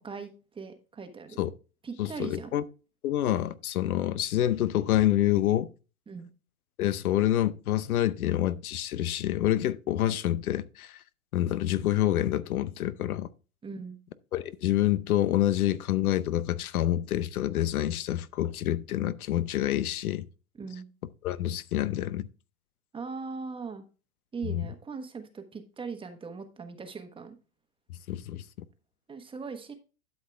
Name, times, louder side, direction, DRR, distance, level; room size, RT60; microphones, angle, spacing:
voice 1, 0.0-1.4 1.8-2.5 6.1-6.3 13.6-14.0 20.6-20.9 22.9-23.8 24.3-27.4 29.1-29.7, right 5 dB, 10° right, 1.2 m, -39 dB
voice 2, 2.0-2.6 3.0-5.7 6.8-11.0 11.3-13.3 14.3-20.2 21.2-22.3 24.4-24.7 28.1-28.4, left 13 dB, 80° left, 0.8 m, -27 dB
12.0 x 5.7 x 3.4 m
hypercardioid pair, 125°, 43 cm